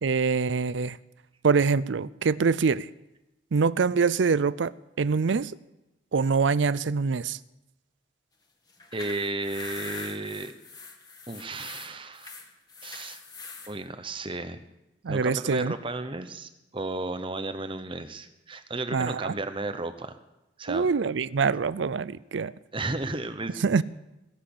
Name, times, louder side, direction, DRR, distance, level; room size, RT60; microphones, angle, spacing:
voice 1, 0.0-1.0 1.4-2.9 3.5-5.5 6.1-7.4 15.0-15.7 18.9-19.4 20.7-22.5 23.6-23.8, right 5 dB, 70° right, 0.5 m, -24 dB
sound 1, 8.7-13.7, left 3 dB, 20° left, 1.9 m, -42 dB
voice 2, 8.9-10.5 11.3-12.3 12.8-13.2 13.7-14.6 15.1-20.2 20.6-20.9 22.7-23.8, right 2 dB, 25° right, 0.9 m, -34 dB
20.5 x 7.6 x 8.6 m
head